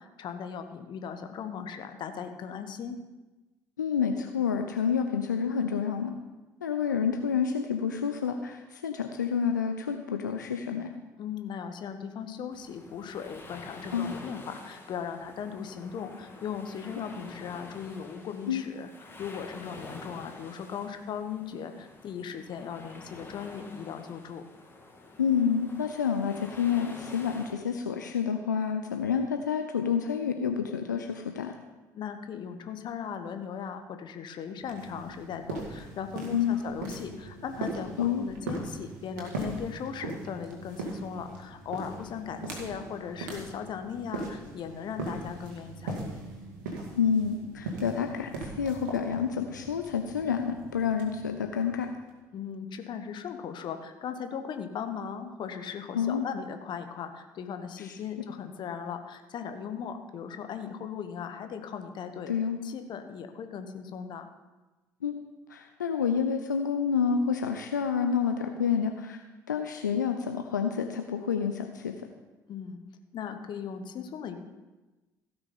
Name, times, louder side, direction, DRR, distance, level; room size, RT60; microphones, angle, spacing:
voice 1, 0.0-3.0 11.2-18.9 19.2-24.4 31.9-46.2 52.3-62.3 62.6-64.3 72.5-72.8 73.1-74.4, left 7 dB, 50° left, 7 dB, 1.2 m, -38 dB
voice 2, 3.8-6.2 6.6-10.9 13.9-14.1 18.5-18.6 25.2-31.5 36.3-36.6 38.0-38.3 46.9-51.9 55.9-56.2 57.8-57.9 62.3-62.6 65.0-65.2 65.5-69.2 69.5-71.9, left 7 dB, 90° left, 5 dB, 0.5 m, -29 dB
sound 1, 12.5-27.5, left 2 dB, 25° left, 2.2 m, -48 dB
sound 2, 34.6-52.1, right 3 dB, 75° right, 2.1 m, -40 dB
16.0 x 5.9 x 5.4 m, 1.1 s
figure-of-eight pair, 55°, 10 cm